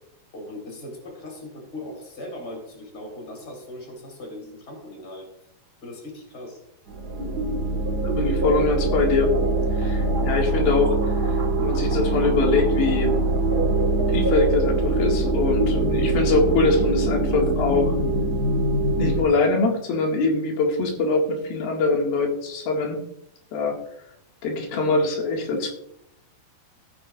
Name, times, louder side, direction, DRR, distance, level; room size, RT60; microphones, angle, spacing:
voice 1, 0.3-5.3 5.8-6.6, left 1 dB, 25° left, 1 dB, 4.3 m, -39 dB
sound 1, 6.9-19.2, right 2 dB, 45° right, 1.4 m, -23 dB
voice 2, 8.0-9.4 9.7-13.2 14.1-18.0 19.0-23.0 23.5-23.8 24.4-25.7, left 3 dB, 90° left, 0 dB, 3.8 m, -23 dB
17.0 x 9.8 x 2.5 m, 0.75 s
omnidirectional pair, 4.2 m